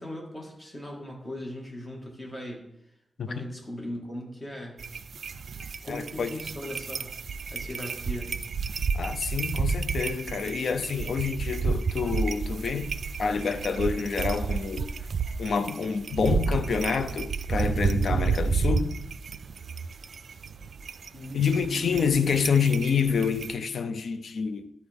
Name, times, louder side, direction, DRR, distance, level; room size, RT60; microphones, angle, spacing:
voice 1, 0.0-2.6 3.2-4.9 5.8-7.1 7.5-8.3 21.1-22.1, left 1 dB, 25° left, 1.8 m, -38 dB
sound 1, 4.8-23.5, right 5 dB, 70° right, 0.3 m, -31 dB
voice 2, 5.9-6.3 8.9-12.9 13.2-14.9 15.4-19.0 21.3-24.7, left 6 dB, 70° left, 0.5 m, -27 dB
12.0 x 4.2 x 3.5 m
wide cardioid pair, 110°, 0 cm